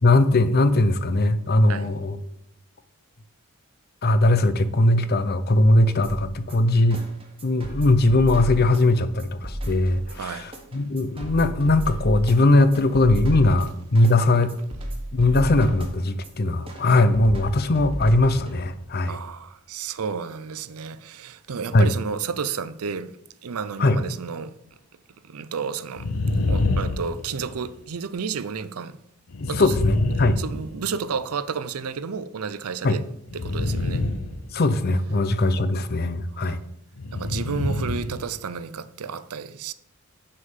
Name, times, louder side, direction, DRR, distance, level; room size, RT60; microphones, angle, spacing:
voice 1, 0.0-2.2 4.0-7.0 7.4-14.5 15.1-19.2 21.7-21.9 23.8-24.0 29.4-30.4 32.8-33.0 34.5-36.6, left 2 dB, 45° left, 0.6 m, -20 dB
sound 1, 6.0-19.0, right 1 dB, 25° right, 1.4 m, -34 dB
voice 2, 10.1-10.5 19.0-24.6 25.2-26.1 26.5-29.0 29.5-29.7 30.4-33.1 33.3-34.1 36.3-36.6 37.1-39.7, right 5 dB, 75° right, 0.5 m, -31 dB
sound 2, 25.9-27.8 29.3-31.2 33.3-35.0 37.0-38.3 38.5-38.6, left 2 dB, 85° left, 0.8 m, -26 dB
6.6 x 5.5 x 7.3 m
head